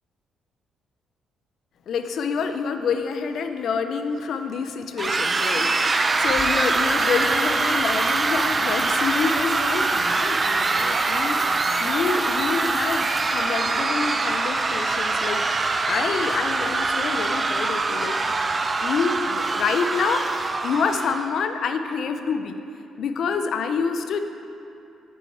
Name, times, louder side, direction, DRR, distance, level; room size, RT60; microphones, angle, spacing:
voice 1, 1.9-18.2 18.8-20.3 20.6-22.6 23.0-24.2, left 5 dB, 65° left, 8 dB, 0.4 m, -27 dB
sound 1, 5.0-21.3, right 3 dB, 30° right, 0.3 m, -23 dB
sound 2, 6.0-13.8, left 1 dB, 10° left, 0.6 m, -40 dB
6.4 x 5.4 x 4.2 m, 2.8 s
cardioid pair, 90°, 0 cm